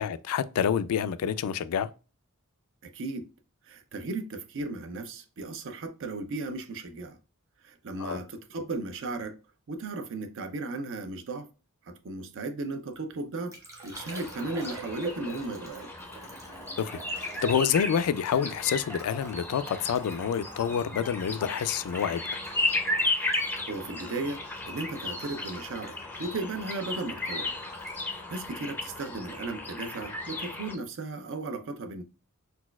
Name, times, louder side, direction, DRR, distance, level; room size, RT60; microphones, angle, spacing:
voice 1, 0.0-1.9 8.0-8.2 16.8-22.2, left 8 dB, 75° left, 0.3 m, -28 dB
voice 2, 2.8-3.3 3.6-7.2 7.6-9.4 9.7-11.5 11.9-15.9 23.4-27.5 28.1-32.0, right 2 dB, 60° right, 0.5 m, -36 dB
Liquid, 12.7-29.3 29.6-30.1, right 4 dB, 15° right, 0.9 m, -47 dB
sound 1, 13.9-30.8, left 2 dB, 10° left, 0.5 m, -35 dB
4.1 x 2.3 x 2.2 m
head